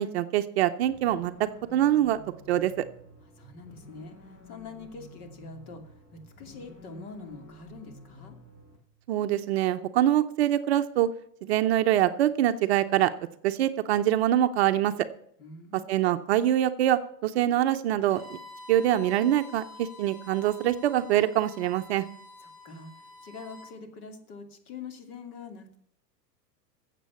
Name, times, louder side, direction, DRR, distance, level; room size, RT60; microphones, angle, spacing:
voice 1, 0.0-2.2 2.5-2.7 9.1-11.1 11.4-13.1 13.4-14.9 15.9-18.4 18.7-22.0, right 12 dB, 40° right, 8 dB, 0.6 m, -24 dB
sound 1, 0.8-8.8, left 1 dB, 45° left, 7.0 m, -51 dB
voice 2, 3.4-8.4 15.4-15.9 22.4-25.8, left 4 dB, 60° left, 6 dB, 2.8 m, -44 dB
Bowed string instrument, 18.0-23.7, left 3 dB, 10° left, 4.6 m, -48 dB
14.5 x 7.6 x 7.0 m, 0.67 s
supercardioid pair, 155°, 49 cm